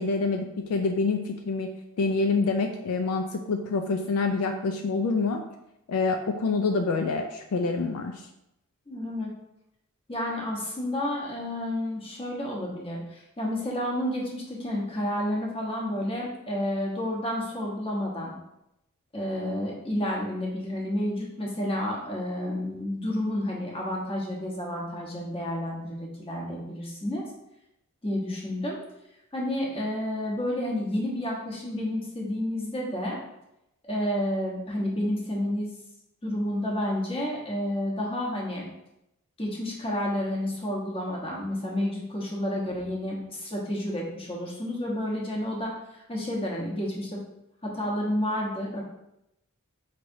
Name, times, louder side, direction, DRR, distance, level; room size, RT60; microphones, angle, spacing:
voice 1, 0.0-1.7 2.0-5.4 5.9-8.2, left 4 dB, 70° left, 5 dB, 0.4 m, -26 dB
voice 2, 8.9-9.3 10.1-18.3 19.1-27.2 28.0-28.8 29.3-33.2 33.8-35.7 36.2-38.7 39.4-45.8 46.1-47.2 47.6-48.8, left 1 dB, 25° left, -3 dB, 1.1 m, -30 dB
5.6 x 3.2 x 2.6 m, 0.85 s
head